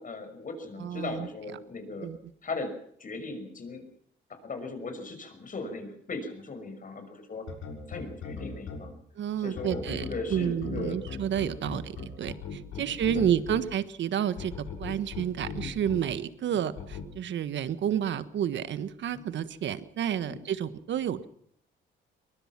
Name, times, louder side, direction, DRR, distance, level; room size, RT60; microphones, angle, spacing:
voice 1, 0.0-2.1 2.4-2.7 3.0-3.9 4.3-7.5 7.9-9.0 9.4-11.0 12.8-13.2 16.5-16.6 19.1-19.2 20.3-20.4, left 3 dB, 40° left, 7 dB, 5.9 m, -38 dB
voice 2, 0.8-1.3 2.0-2.2 9.2-21.3, right 9 dB, 65° right, 13 dB, 1.5 m, -30 dB
sound 1, 7.5-8.8 9.6-13.6 14.4-16.0 16.8-17.0, left 6 dB, 85° left, 6.5 m, -37 dB
23.0 x 20.5 x 6.0 m, 0.68 s
cardioid pair, 90°, 20 cm